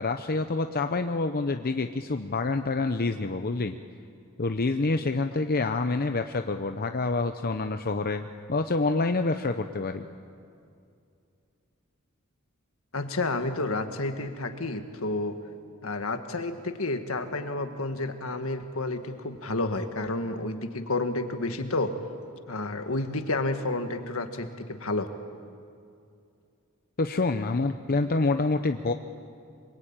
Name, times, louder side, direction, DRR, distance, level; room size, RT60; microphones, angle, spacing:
voice 1, 0.0-3.8 4.4-10.0 27.0-28.9, left 3 dB, 45° left, 7 dB, 0.8 m, -27 dB
voice 2, 12.9-15.4 15.8-21.9 22.5-25.1, left 2 dB, 75° left, 7 dB, 1.9 m, -30 dB
26.0 x 22.5 x 9.0 m, 2.4 s
head